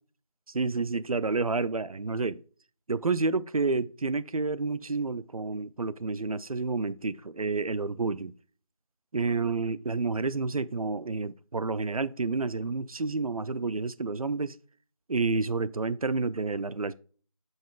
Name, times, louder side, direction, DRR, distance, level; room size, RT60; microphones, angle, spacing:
voice 1, 0.5-2.4 2.9-8.3 9.1-14.6 15.1-16.9, right 3 dB, 90° right, 0.5 m, -29 dB
8.9 x 5.5 x 2.4 m
figure-of-eight pair, 175°, 18 cm